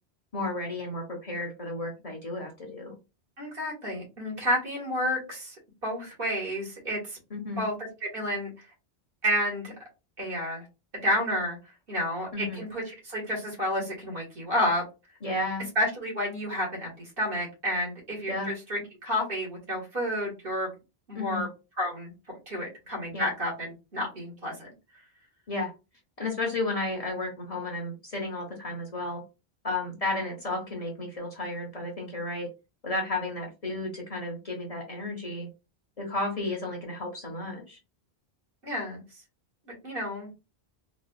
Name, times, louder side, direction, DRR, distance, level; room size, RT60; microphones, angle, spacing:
voice 1, 0.3-3.0 7.3-7.6 12.3-12.6 15.2-15.6 18.3-18.5 21.1-21.4 23.1-23.3 25.5-25.7 26.2-29.2 29.6-32.5 32.8-35.5 36.0-37.8, left 2 dB, 40° left, 1 dB, 0.9 m, -33 dB
voice 2, 3.4-5.6 5.8-7.2 7.6-7.7 8.0-8.7 9.2-9.7 10.2-10.6 11.0-11.6 11.9-14.8 15.8-20.7 21.1-21.5 21.8-22.1 22.5-24.7 38.6-39.2 39.7-40.3, equal, 65° right, -3 dB, 2.0 m, -30 dB
4.0 x 2.4 x 2.3 m, 0.27 s
omnidirectional pair, 1.1 m